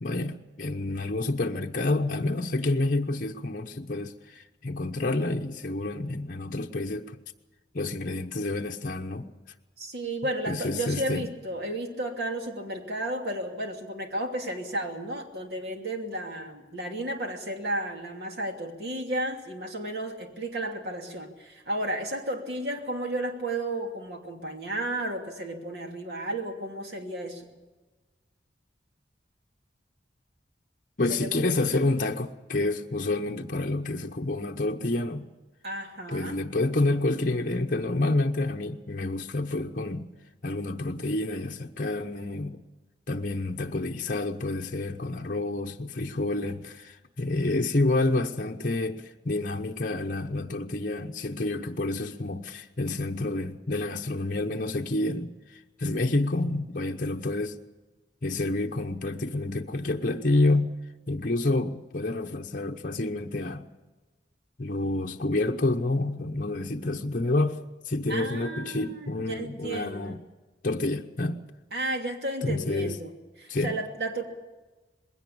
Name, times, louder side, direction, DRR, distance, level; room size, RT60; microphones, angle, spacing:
voice 1, 0.0-7.2 7.7-9.3 10.5-11.3 31.0-35.3 36.1-40.1 40.4-42.6 43.1-57.5 58.2-60.7 61.1-63.7 64.6-67.6 67.8-70.2 70.6-71.4 72.4-73.0 73.5-73.8, left 2 dB, 50° left, 0.9 m, -28 dB
voice 2, 9.8-27.5 31.1-31.3 31.7-31.8 35.6-36.4 68.1-70.2 71.7-74.2, right 1 dB, 65° right, 2.8 m, -33 dB
21.0 x 17.0 x 8.6 m
head